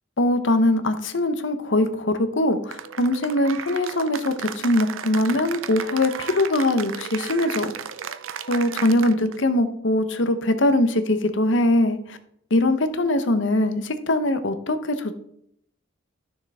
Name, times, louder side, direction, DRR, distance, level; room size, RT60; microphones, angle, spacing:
voice 1, 0.2-7.7 8.5-12.2 12.5-15.1, left 1 dB, 65° left, 9 dB, 0.9 m, -22 dB
Cheering / Applause, 2.7-9.4, right 8 dB, 85° right, 0.5 m, -34 dB
12.5 x 6.5 x 3.5 m, 0.71 s
head